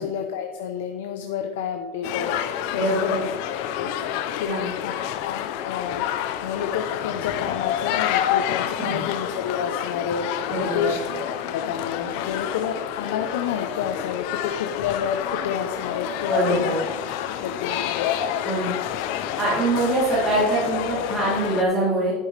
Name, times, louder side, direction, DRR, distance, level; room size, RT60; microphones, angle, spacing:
voice 1, 0.0-3.3 3.8-6.1 6.4-11.1 11.5-16.8 17.2-18.1, left 8 dB, 90° left, 4 dB, 0.7 m, -30 dB
sound 1, 2.0-21.6, left 10 dB, 55° left, 0.6 m, -28 dB
voice 2, 2.7-3.2 4.5-4.7 10.5-10.9 16.3-16.8 18.4-18.7 19.4-22.1, right 2 dB, 15° right, -8 dB, 3.2 m, -23 dB
10.5 x 8.3 x 3.3 m, 1.2 s
supercardioid pair, 170°, 0 cm